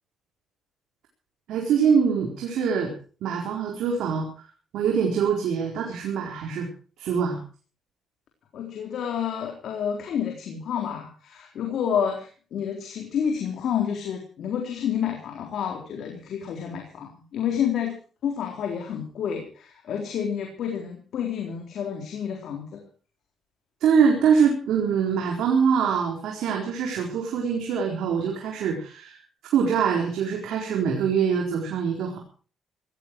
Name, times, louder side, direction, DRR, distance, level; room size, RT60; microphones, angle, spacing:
voice 1, 1.5-2.9 3.2-4.3 4.7-6.7 7.0-7.4 23.8-29.2 29.5-32.2, right 6 dB, 80° right, 1 dB, 4.2 m, -24 dB
voice 2, 8.5-17.9 18.2-22.8, left 8 dB, 70° left, 2 dB, 3.9 m, -29 dB
18.0 x 15.5 x 4.7 m, 0.40 s
cardioid pair, 90°, 0 cm